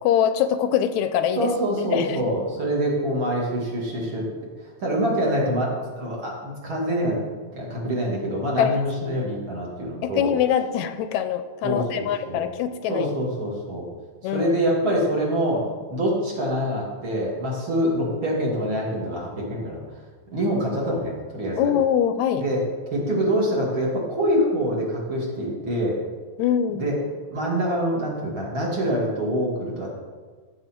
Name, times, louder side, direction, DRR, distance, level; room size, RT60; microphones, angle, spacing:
voice 1, 0.0-1.5 1.9-2.2 8.6-8.8 10.0-13.1 14.2-14.5 21.6-22.4 26.4-26.8, left 9 dB, 85° left, 10 dB, 1.9 m, -23 dB
voice 2, 1.4-4.3 4.6-7.2 7.5-10.3 11.6-12.5 12.9-13.9 14.2-15.6 15.9-19.8 20.3-21.7 22.4-22.6 22.9-26.0 26.7-27.0 27.3-29.9, equal, 45° right, -4 dB, 3.0 m, -25 dB
14.5 x 7.2 x 4.5 m, 1.5 s
omnidirectional pair, 3.4 m